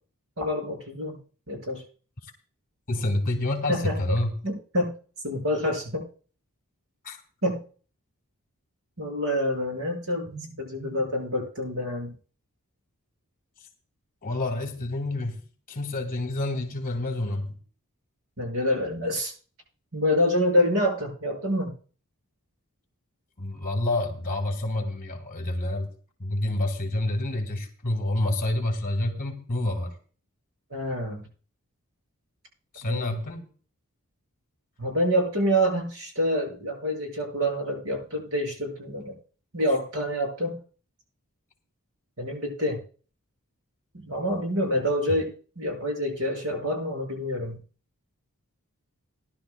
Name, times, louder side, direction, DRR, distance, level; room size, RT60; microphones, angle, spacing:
voice 1, 0.4-1.2 1.5-1.8 3.7-4.0 4.4-4.9 5.2-6.0 7.4-7.6 9.0-12.1 18.4-19.3 19.9-21.7 30.7-31.2 32.8-33.2 34.8-39.1 39.5-40.6 42.2-42.8 43.9-47.6, equal, 70° right, 1 dB, 6.6 m, -27 dB
voice 2, 2.9-4.3 7.0-7.2 14.2-15.4 15.7-17.5 23.4-25.9 26.2-30.0 32.7-33.4 45.1-45.2, left 1 dB, 40° left, 2 dB, 2.5 m, -28 dB
19.5 x 11.5 x 2.3 m, 0.40 s
head